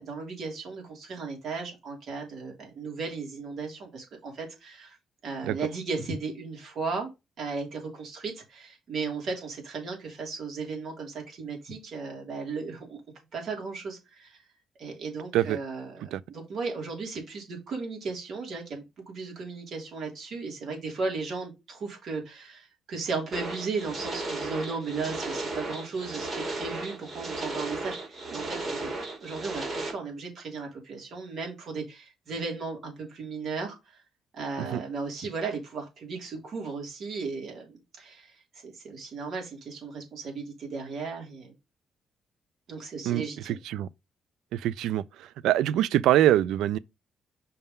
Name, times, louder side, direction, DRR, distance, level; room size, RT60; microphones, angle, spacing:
voice 1, 0.0-5.0 5.2-7.1 7.4-13.0 13.3-14.4 14.8-28.9 29.2-34.0 34.3-38.4 38.6-41.5 42.7-43.6, right 4 dB, 60° right, 3.4 m, -36 dB
sound 1, 23.3-29.9, right 2 dB, 40° right, 2.9 m, -35 dB
voice 2, 43.1-43.9 44.5-45.0 45.4-46.8, right 13 dB, 85° right, 0.3 m, -24 dB
5.6 x 3.6 x 5.4 m
cardioid pair, 90°, 0 cm